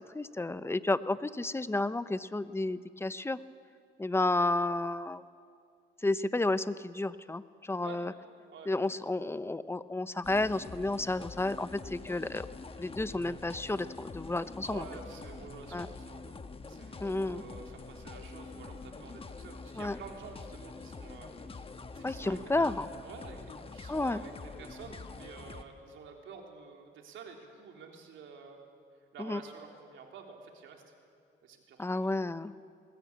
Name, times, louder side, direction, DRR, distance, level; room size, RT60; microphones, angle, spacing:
voice 1, 0.1-3.4 4.0-5.2 6.0-8.1 8.7-12.5 12.8-14.8 15.7-15.9 17.0-17.4 19.8-20.0 22.0-22.9 23.9-24.2 29.2-29.4 31.8-32.5, left 2 dB, 10° left, 14 dB, 0.7 m, -31 dB
voice 2, 8.5-8.9 14.6-16.4 16.7-21.6 21.9-22.7 23.0-28.6 29.1-30.8 31.4-32.1, right 5 dB, 75° right, 2 dB, 3.4 m, -49 dB
sound 1, 10.2-25.6, left 4 dB, 30° left, 1.2 m, -46 dB
20.5 x 19.0 x 8.5 m, 2.3 s
cardioid pair, 90°, 20 cm